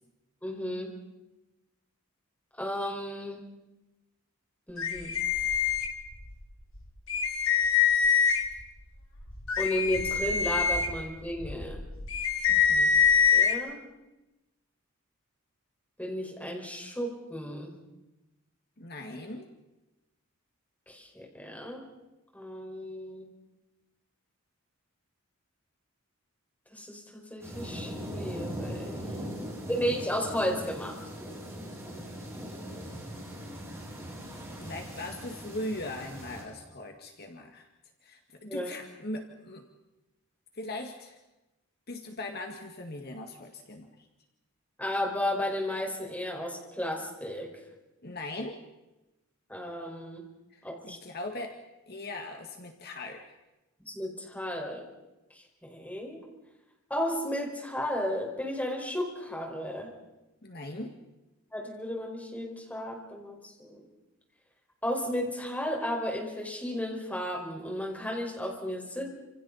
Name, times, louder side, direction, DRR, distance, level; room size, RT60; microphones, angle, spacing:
voice 1, 0.4-0.9 2.6-3.5 4.7-5.1 9.6-11.8 13.3-13.8 16.0-17.8 20.9-21.8 22.3-23.3 26.7-27.0 27.3-29.0 29.7-31.0 38.4-38.7 44.8-47.5 49.5-50.2 50.6-51.0 53.9-54.8 55.3-56.2 56.9-59.9 61.5-63.8 64.8-69.1, equal, 5° left, -1 dB, 5.0 m, -33 dB
sound 1, 4.8-6.3 6.7-6.8 7.1-8.6 9.2-13.5, left 6 dB, 65° left, 2.4 m, -25 dB
voice 2, 12.5-13.0 18.8-19.5 29.4-29.9 34.6-37.7 38.0-39.6 40.5-41.2 41.9-44.1 48.0-48.6 50.5-51.6 51.9-53.3 60.4-61.0, left 1 dB, 50° left, 3 dB, 1.9 m, -40 dB
sound 2, 27.4-36.4, equal, 15° right, 6.3 m, -40 dB
29.0 x 27.5 x 4.2 m, 0.99 s
head